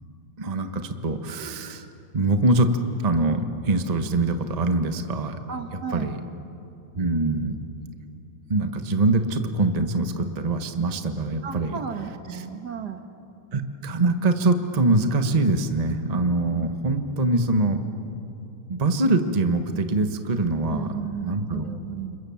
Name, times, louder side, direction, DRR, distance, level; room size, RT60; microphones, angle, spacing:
voice 1, 0.4-1.9 2.1-2.8 3.0-5.4 5.9-6.2 6.9-7.5 8.5-11.8 13.5-17.9 18.7-20.9 21.2-21.8, right 2 dB, 25° right, 7 dB, 1.1 m, -23 dB
voice 2, 5.5-6.2 11.4-13.0 20.7-22.2, right 7 dB, 55° right, 6 dB, 1.9 m, -34 dB
30.0 x 27.0 x 7.3 m, 2.8 s
omnidirectional pair, 2.3 m